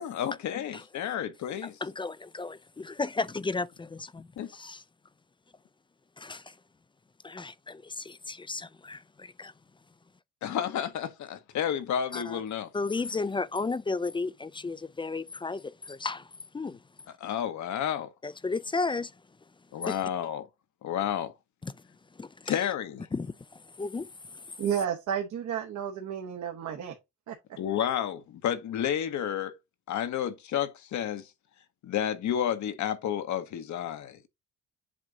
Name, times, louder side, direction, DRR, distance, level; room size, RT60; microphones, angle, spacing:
voice 1, 0.0-1.8 4.4-4.5 10.4-12.7 17.2-18.1 19.7-20.5 20.8-21.3 22.5-23.0 27.6-29.5 29.9-31.3 31.8-34.2, left 9 dB, 70° left, 1.1 m, -31 dB
voice 2, 1.6-4.3 4.5-4.8 6.2-6.5 7.2-9.5 12.1-12.4 12.7-16.3 16.5-16.8 18.2-19.1 19.9-20.0 21.6-21.7 22.2-22.6 23.1-24.4, left 3 dB, 15° left, 0.4 m, -34 dB
voice 3, 24.6-26.9 27.3-27.4, right 8 dB, 70° right, 1.2 m, -31 dB
7.4 x 2.7 x 4.8 m
cardioid pair, 90°, 30 cm